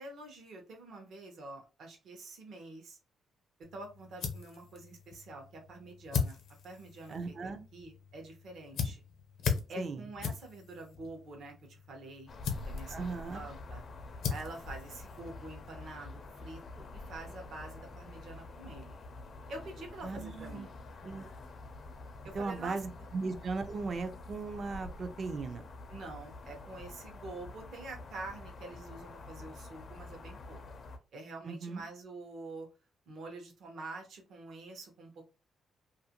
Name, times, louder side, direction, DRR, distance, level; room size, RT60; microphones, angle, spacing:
voice 1, 0.0-3.0 3.7-6.4 6.6-9.0 9.7-12.3 12.6-13.8 14.3-19.0 19.5-20.7 22.2-22.8 25.9-30.6 31.1-32.7 33.1-35.2, right 2 dB, 65° right, 0.8 m, -46 dB
sound 1, 3.6-15.7, left 6 dB, 80° left, 0.7 m, -40 dB
voice 2, 7.1-7.6 9.8-10.0 12.9-13.4 20.0-20.7 21.0-21.3 22.3-25.7 31.4-31.8, right 4 dB, 40° right, 0.4 m, -37 dB
sound 2, 12.3-31.0, left 2 dB, 45° left, 0.5 m, -47 dB
2.5 x 2.5 x 2.8 m
cardioid pair, 120°, 0 cm